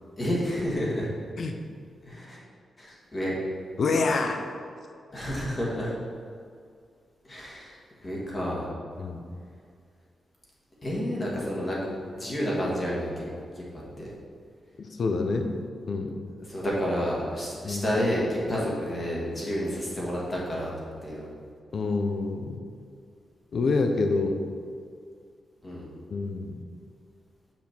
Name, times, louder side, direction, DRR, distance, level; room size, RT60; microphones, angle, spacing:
voice 1, 0.2-1.1 2.1-2.4 2.8-3.4 5.1-5.9 7.3-8.7 10.8-13.2 13.5-13.7 14.0-14.1 16.4-21.3 25.6-25.9, equal, 25° left, -5 dB, 1.5 m, -30 dB
voice 2, 3.8-4.4 9.0-9.2 14.8-15.5 15.9-16.2 17.6-17.8 21.7-22.6 23.5-24.4 26.1-26.5, left 3 dB, 45° left, 5 dB, 0.6 m, -27 dB
6.5 x 5.9 x 4.4 m, 2.2 s
wide cardioid pair, 175°, 0 cm